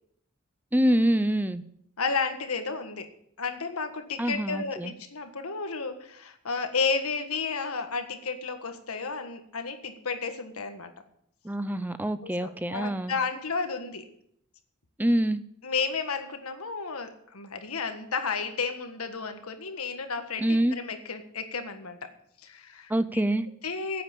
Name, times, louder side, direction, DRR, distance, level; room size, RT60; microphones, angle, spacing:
voice 1, 0.7-1.6 4.2-4.9 11.4-13.2 15.0-15.4 20.4-20.8 22.9-23.5, right 1 dB, 10° right, 13 dB, 0.5 m, -25 dB
voice 2, 2.0-3.1 3.4-10.9 12.2-14.1 15.6-22.1 22.4-23.2 23.6-24.0, left 4 dB, 85° left, 7 dB, 1.6 m, -32 dB
9.8 x 8.5 x 8.4 m, 0.71 s
head